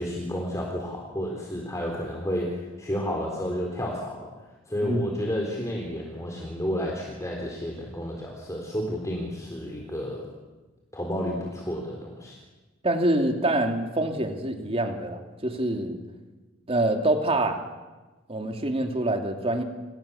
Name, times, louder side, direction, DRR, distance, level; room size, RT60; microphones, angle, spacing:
voice 1, 0.0-4.3 4.7-10.3 10.9-12.4, equal, 15° left, -1 dB, 4.1 m, -31 dB
voice 2, 12.8-16.0 16.7-17.6 18.3-19.6, right 1 dB, 30° right, 4 dB, 3.0 m, -26 dB
29.0 x 27.5 x 7.3 m, 1.2 s
head